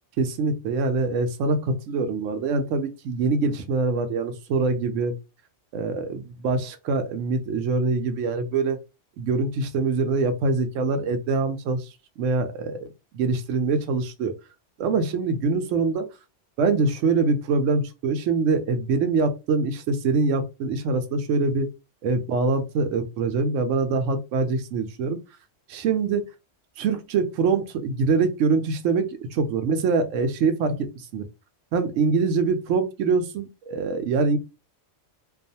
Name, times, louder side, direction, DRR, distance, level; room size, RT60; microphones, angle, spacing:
voice 1, 0.2-5.2 5.7-8.8 9.2-11.9 12.2-12.9 13.1-14.3 14.8-16.1 16.6-21.7 22.0-25.2 25.7-26.2 26.8-31.2 31.7-34.4, right 4 dB, 80° right, 0.9 m, -24 dB
2.4 x 2.3 x 2.7 m
omnidirectional pair, 1.3 m